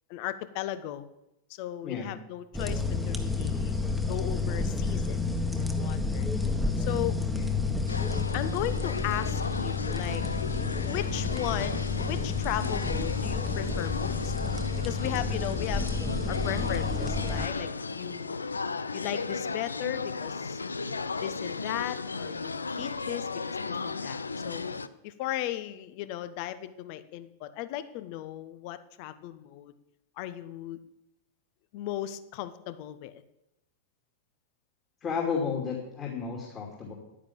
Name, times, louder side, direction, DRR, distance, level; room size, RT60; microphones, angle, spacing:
voice 1, 0.1-1.0 1.5-6.3 6.8-7.2 8.3-10.2 10.8-14.3 14.8-15.9 16.3-18.4 18.9-20.6 21.2-24.6 25.0-29.7 30.2-30.8 31.7-33.2, left 13 dB, 45° left, 13 dB, 0.9 m, -36 dB
voice 2, 1.8-2.2 7.3-7.8 35.0-36.9, left 6 dB, 25° left, -2 dB, 2.7 m, -33 dB
sound 1, 2.5-17.5, left 4 dB, ahead, 1.4 m, -30 dB
sound 2, 7.9-24.9, left 4 dB, 75° left, 0.5 m, -35 dB
11.0 x 10.0 x 7.2 m, 0.87 s
figure-of-eight pair, 90°, 0 cm